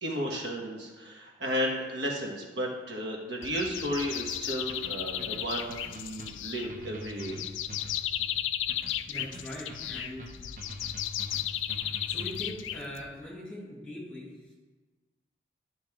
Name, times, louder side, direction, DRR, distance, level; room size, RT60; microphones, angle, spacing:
voice 1, 0.0-7.4, equal, 65° right, -1 dB, 1.4 m, -33 dB
sound 1, 3.4-13.2, left 11 dB, 85° left, 0.4 m, -35 dB
sound 2, 4.7-12.6, equal, 45° right, 0.9 m, -45 dB
voice 2, 9.1-10.3 12.1-14.3, left 1 dB, 5° left, -6 dB, 2.4 m, -41 dB
11.0 x 6.2 x 3.6 m, 1.3 s
head